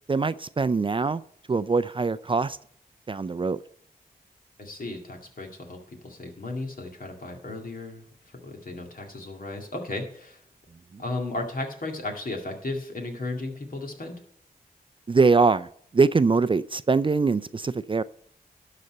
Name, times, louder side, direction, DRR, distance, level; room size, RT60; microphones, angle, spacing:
voice 1, 0.1-1.2 1.5-2.6 3.1-3.6 15.1-15.7 15.9-18.0, right 4 dB, 30° right, 15 dB, 0.4 m, -22 dB
voice 2, 4.6-8.1 8.4-10.4 11.0-14.1, left 2 dB, 60° left, 2 dB, 2.1 m, -35 dB
12.0 x 4.2 x 7.6 m, 0.63 s
cardioid pair, 55°, 16 cm